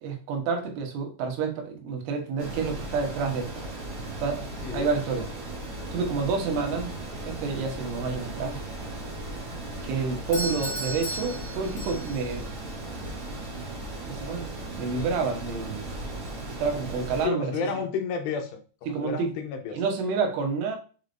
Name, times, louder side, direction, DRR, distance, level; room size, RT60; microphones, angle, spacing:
voice 1, 0.0-3.6 4.2-5.3 5.9-7.0 7.2-8.6 9.8-12.5 14.1-14.5 14.8-15.8 16.6-17.5 18.9-19.3 19.7-20.8, right 5 dB, 80° right, 3 dB, 3.7 m, -29 dB
sound 1, 2.4-17.3, right 1 dB, 35° right, 2.0 m, -37 dB
Doorbell, 10.3-12.3, equal, 30° left, 2.6 m, -35 dB
voice 2, 17.2-19.8, left 6 dB, 80° left, 4 dB, 2.6 m, -31 dB
7.2 x 4.9 x 2.7 m, 0.37 s
omnidirectional pair, 5.3 m